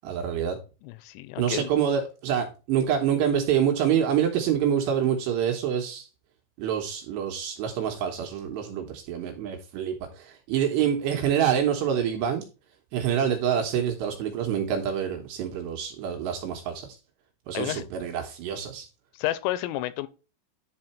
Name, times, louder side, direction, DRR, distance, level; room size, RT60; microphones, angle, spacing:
voice 1, 0.0-0.6 1.4-6.1 6.6-12.4 12.9-17.0 17.5-18.8, right 8 dB, 70° right, 2.8 m, -26 dB
voice 2, 0.8-1.7 17.5-17.8 19.1-20.1, left 15 dB, 85° left, 3.1 m, -30 dB
11.0 x 4.2 x 4.2 m
omnidirectional pair, 5.9 m